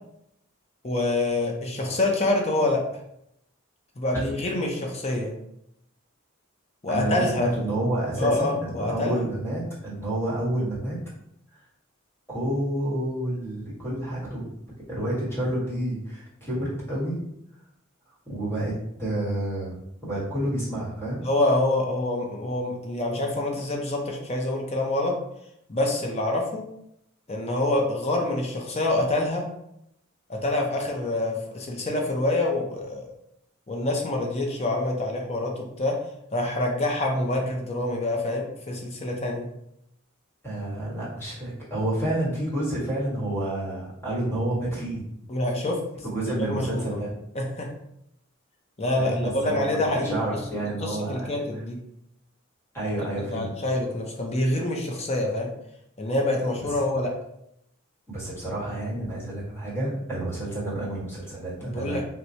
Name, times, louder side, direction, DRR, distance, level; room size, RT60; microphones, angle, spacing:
voice 1, 0.8-2.8 4.0-5.3 6.8-7.7 8.2-9.2 21.2-25.2 25.7-26.6 27.3-29.5 30.3-33.1 33.7-36.0 36.3-39.5 45.3-45.8 46.4-47.0 47.3-47.7 48.8-50.2 50.8-51.8 53.3-55.5 56.0-57.1 61.6-62.0, left 2 dB, 30° left, 1 dB, 0.6 m, -26 dB
voice 2, 6.9-11.0 12.3-14.5 14.9-17.2 18.2-18.7 19.0-19.7 20.0-21.2 40.4-45.0 46.0-47.1 49.0-51.6 52.7-53.6 58.1-62.0, right 1 dB, 10° left, -7 dB, 1.2 m, -29 dB
4.3 x 2.2 x 2.6 m, 0.77 s
head